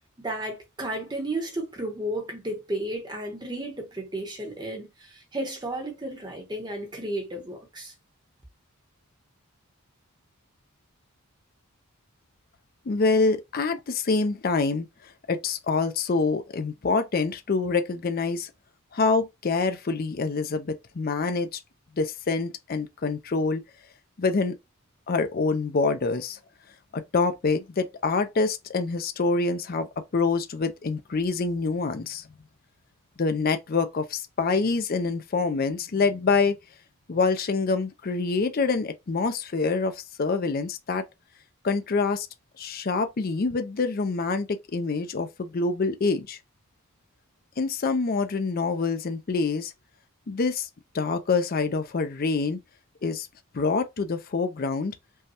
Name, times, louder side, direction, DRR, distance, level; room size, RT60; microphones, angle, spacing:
voice 1, 0.2-7.9, right 1 dB, 20° right, 0.9 m, -33 dB
voice 2, 12.9-14.9 15.3-18.5 18.9-21.6 22.0-23.6 24.2-24.6 25.1-26.4 26.9-32.2 33.2-36.6 37.1-41.0 41.6-42.3 42.6-46.4 47.6-49.7 50.3-50.7 50.9-52.6 53.0-53.3 53.5-54.9, left 4 dB, 40° left, 0.4 m, -26 dB
5.3 x 2.2 x 2.8 m
head